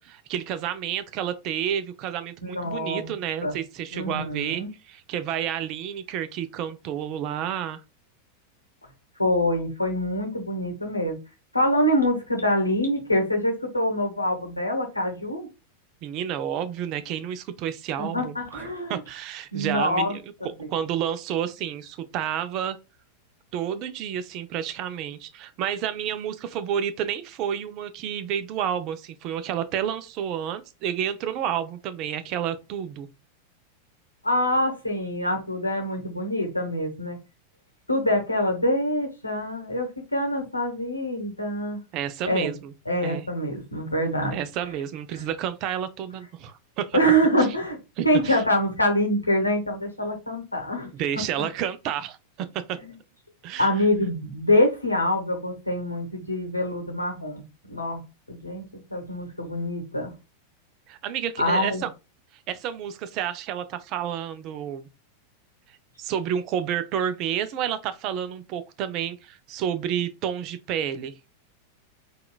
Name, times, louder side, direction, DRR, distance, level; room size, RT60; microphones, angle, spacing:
voice 1, 0.0-7.8 16.0-22.8 23.5-33.1 41.9-43.3 44.3-47.0 48.0-48.4 50.9-52.8 53.4-53.8 60.9-61.9 62.5-64.9 66.0-71.1, right 9 dB, 40° right, 0.4 m, -30 dB
voice 2, 2.4-3.1 3.4-3.5 3.9-4.7 9.2-11.2 11.5-15.5 18.0-19.0 19.5-20.2 20.4-20.7 34.2-37.2 37.9-41.8 42.2-42.5 42.9-44.4 45.1-45.2 46.9-47.8 48.0-50.9 51.4-51.5 53.6-58.0 58.3-58.6 58.9-60.1 61.4-61.8, equal, 85° left, 0.9 m, -25 dB
3.6 x 2.2 x 2.2 m
figure-of-eight pair, 90°, 0 cm